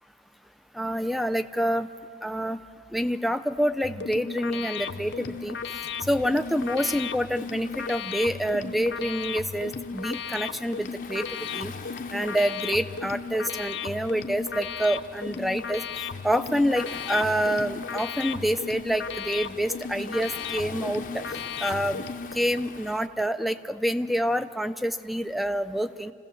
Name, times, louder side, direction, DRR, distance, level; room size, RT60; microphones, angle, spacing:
voice 1, 0.7-1.9 2.2-2.6 2.9-5.6 6.1-11.3 11.5-11.7 12.1-15.8 16.2-21.4 21.6-22.0 22.3-26.1, equal, ahead, 11 dB, 0.4 m, -27 dB
sound 1, 3.8-22.3, left 6 dB, 90° left, 0.7 m, -35 dB
Waves surf, 4.8-23.1, left 4 dB, 45° left, 0.6 m, -45 dB
25.5 x 16.0 x 7.0 m, 2.4 s
head